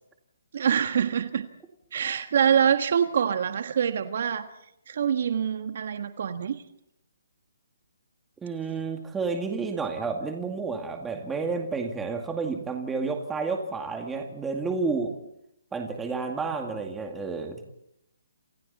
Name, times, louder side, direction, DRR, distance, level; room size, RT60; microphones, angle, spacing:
voice 1, 0.5-1.5 1.9-4.5 4.9-6.6, right 8 dB, 55° right, 8 dB, 1.5 m, -25 dB
voice 2, 8.4-15.2 15.7-17.6, right 4 dB, 10° right, 2 dB, 2.2 m, -30 dB
28.5 x 28.0 x 4.2 m, 0.80 s
hypercardioid pair, 160°, 0 cm